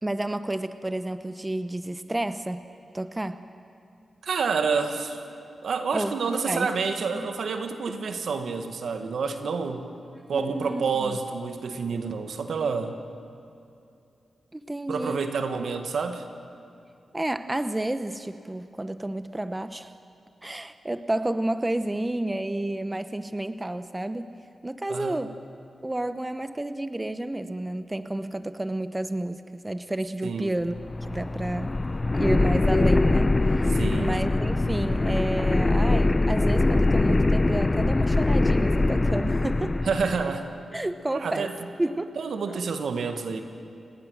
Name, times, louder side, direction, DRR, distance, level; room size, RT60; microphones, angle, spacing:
voice 1, 0.0-2.6 2.9-3.4 5.9-6.7 7.1-7.3 10.1-11.2 14.5-15.2 17.1-19.9 20.4-24.3 24.6-25.4 25.8-30.7 31.1-31.7 32.1-33.7 34.0-39.8 40.2-40.3 40.7-41.5 41.8-42.2 42.5-42.6, right 1 dB, 20° right, 11 dB, 0.9 m, -30 dB
voice 2, 4.2-5.2 5.6-9.8 10.3-13.0 14.9-16.2 24.9-25.3 30.2-30.5 33.7-34.2 39.8-40.4 41.2-41.5 42.2-43.4, right 5 dB, 75° right, 6 dB, 1.7 m, -28 dB
sound 1, 30.7-40.3, left 2 dB, 35° left, 0.8 m, -23 dB
30.0 x 18.0 x 6.4 m, 2.6 s
cardioid pair, 50°, 0 cm